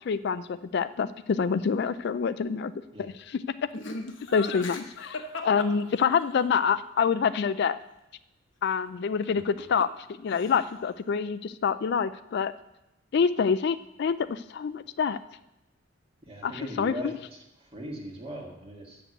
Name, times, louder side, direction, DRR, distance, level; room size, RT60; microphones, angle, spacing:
voice 1, 0.1-2.7 3.0-3.4 4.3-7.8 8.6-9.9 10.2-12.5 13.1-15.2 16.4-17.2, left 6 dB, 60° left, 14 dB, 0.4 m, -27 dB
Laughter, 3.7-6.4 9.2-10.0 10.3-10.8, left 3 dB, 80° left, 1.1 m, -38 dB
voice 2, 16.3-17.1 17.6-19.0, equal, 30° right, 0 dB, 1.8 m, -39 dB
7.5 x 6.9 x 7.8 m, 0.91 s
head